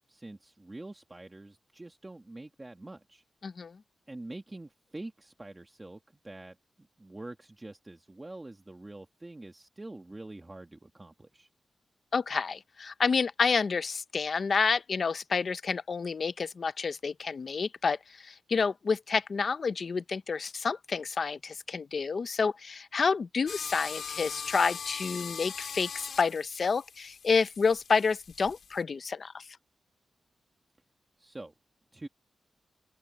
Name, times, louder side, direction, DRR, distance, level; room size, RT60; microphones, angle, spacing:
voice 1, 0.1-3.2 4.1-11.5 31.2-31.5 31.9-32.1, right 2 dB, 15° right, 1.3 m, -45 dB
voice 2, 3.4-3.8 12.1-29.4, left 5 dB, 45° left, 0.6 m, -29 dB
sound 1, 23.5-28.8, left 6 dB, 70° left, 2.1 m, -41 dB
open air
wide cardioid pair, 170°, 0 cm